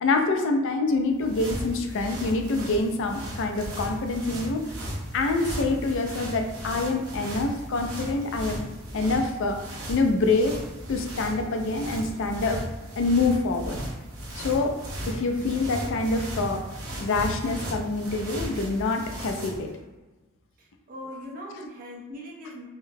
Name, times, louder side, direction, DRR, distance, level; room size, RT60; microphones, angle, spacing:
voice 1, 0.0-4.6 5.1-8.6 8.9-10.6 10.9-12.6 13.0-13.8 14.4-14.8 15.1-16.6 17.0-19.7, left 3 dB, 60° left, 4 dB, 0.4 m, -26 dB
sound 1, 1.0-19.7, equal, 75° right, 0.8 m, -36 dB
voice 2, 20.6-22.7, left 1 dB, 40° right, -1 dB, 0.6 m, -40 dB
3.7 x 2.1 x 2.7 m, 1.2 s
head